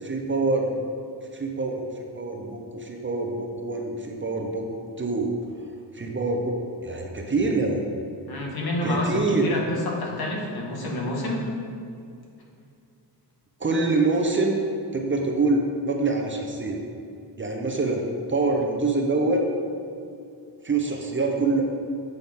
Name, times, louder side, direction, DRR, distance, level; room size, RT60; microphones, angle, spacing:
voice 1, 0.0-0.8 1.3-4.7 5.0-5.3 5.9-6.6 6.8-7.8 8.8-9.5 13.6-14.6 14.9-16.8 17.4-19.5 20.6-21.6, right 3 dB, 30° right, 1 dB, 0.8 m, -25 dB
voice 2, 8.3-11.4, left 1 dB, 60° left, -2 dB, 1.9 m, -28 dB
9.8 x 7.9 x 3.6 m, 2.4 s
wide cardioid pair, 155°, 41 cm